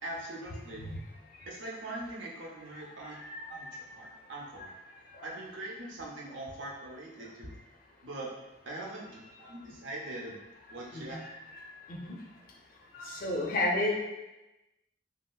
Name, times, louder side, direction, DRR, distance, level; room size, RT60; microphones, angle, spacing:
voice 1, 0.0-0.8 1.5-3.2 3.5-3.7 3.9-4.7 5.2-7.5 8.0-8.3 8.6-10.4 10.7-11.2, right 1 dB, 75° right, -2 dB, 0.6 m, -42 dB
voice 2, 3.2-3.8 5.2-5.3 10.9-12.1 12.9-14.0, left 2 dB, 45° left, 0 dB, 0.4 m, -33 dB
2.9 x 2.7 x 2.3 m, 1.0 s
head